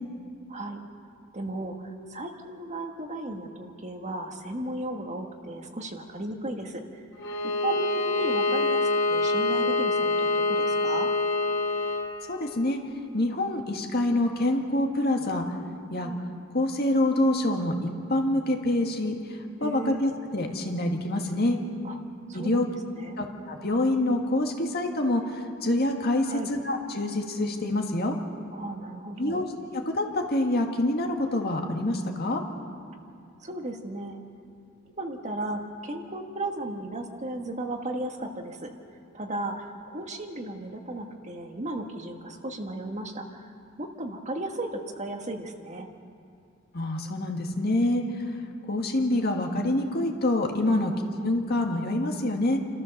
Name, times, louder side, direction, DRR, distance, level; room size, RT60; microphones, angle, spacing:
voice 1, 1.3-7.0 7.6-11.1 16.0-16.2 19.6-20.1 21.8-22.0 22.3-22.6 23.0-23.2 26.3-26.5 28.5-29.4 33.4-34.2 35.0-38.7 39.1-43.5 43.8-45.9 50.7-51.1, right 2 dB, 35° right, 3 dB, 1.5 m, -35 dB
Bowed string instrument, 7.2-12.1, left 2 dB, 70° left, 3.4 m, -25 dB
voice 2, 12.3-12.8 13.1-15.5 15.9-16.1 16.5-21.6 22.3-22.7 23.2-28.2 29.2-29.5 29.9-32.4 46.7-48.3 48.7-50.9 51.2-52.6, left 1 dB, 50° left, 2 dB, 2.0 m, -26 dB
29.5 x 14.0 x 6.7 m, 2.4 s
head